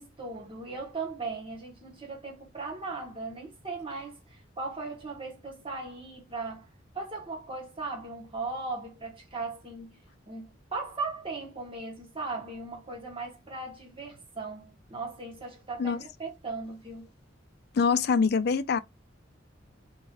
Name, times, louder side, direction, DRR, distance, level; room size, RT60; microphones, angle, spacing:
voice 1, 0.0-6.7 6.9-17.1, right 3 dB, 30° right, 1.7 m, -38 dB
voice 2, 17.7-18.8, left 5 dB, 55° left, 0.4 m, -24 dB
3.6 x 3.0 x 2.9 m
head